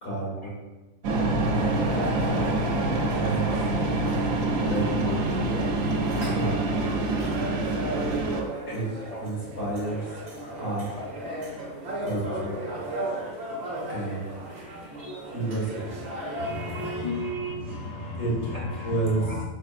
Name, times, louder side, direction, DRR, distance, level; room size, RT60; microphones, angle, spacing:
voice 1, 0.0-0.6 3.1-3.4 4.6-5.2 6.3-6.7 8.7-8.9 9.2-10.1 10.5-10.8 12.0-12.6 13.9-14.3 15.3-15.8 18.2-18.5 18.8-19.2, right 2 dB, 45° left, -6 dB, 1.6 m, -30 dB
sound 1, 1.0-8.4, right 2 dB, 85° right, 1.0 m, -26 dB
sound 2, 1.5-17.1, right 1 dB, 60° right, 1.0 m, -36 dB
voice 2, 16.3-19.4, left 1 dB, 65° left, -5 dB, 0.4 m, -34 dB
4.3 x 3.5 x 2.4 m, 1.1 s
omnidirectional pair, 1.3 m